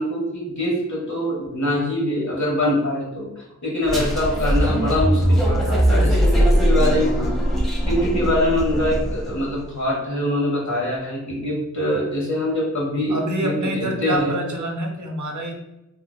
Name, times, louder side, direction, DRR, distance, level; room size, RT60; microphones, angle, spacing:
voice 1, 0.0-7.4 7.9-14.4, left 1 dB, 75° left, -3 dB, 1.2 m, -24 dB
sound 1, 3.9-9.4, equal, ahead, 0.7 m, -20 dB
voice 2, 13.1-15.5, right 1 dB, 85° right, 3 dB, 0.6 m, -26 dB
3.3 x 2.8 x 2.2 m, 0.91 s
wide cardioid pair, 40°, 29 cm